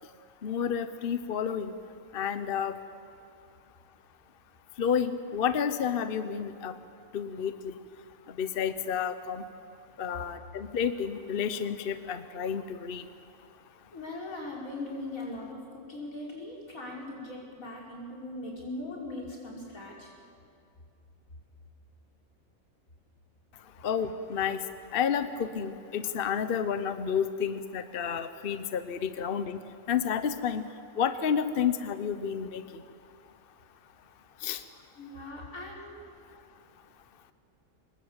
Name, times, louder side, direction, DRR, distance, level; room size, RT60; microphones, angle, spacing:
voice 1, 0.4-1.7 2.1-2.8 4.8-6.8 7.1-7.7 8.4-9.4 10.0-13.0 23.8-24.6 24.9-29.6 29.9-30.6 31.0-32.6 34.4-34.6, left 7 dB, 50° left, 11 dB, 1.0 m, -30 dB
voice 2, 13.9-20.1 35.0-36.0, left 2 dB, 90° left, -3 dB, 5.5 m, -40 dB
24.5 x 21.0 x 8.1 m, 2.4 s
omnidirectional pair, 1.4 m